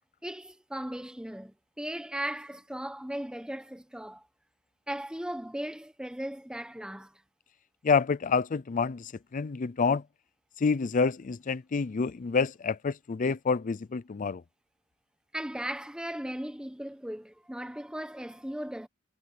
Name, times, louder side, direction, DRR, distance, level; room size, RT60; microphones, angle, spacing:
voice 1, 0.2-4.2 4.9-7.1 15.3-18.9, right 1 dB, 5° right, 1.0 m, -37 dB
voice 2, 7.8-10.0 10.6-14.4, left 5 dB, 40° left, 0.4 m, -28 dB
head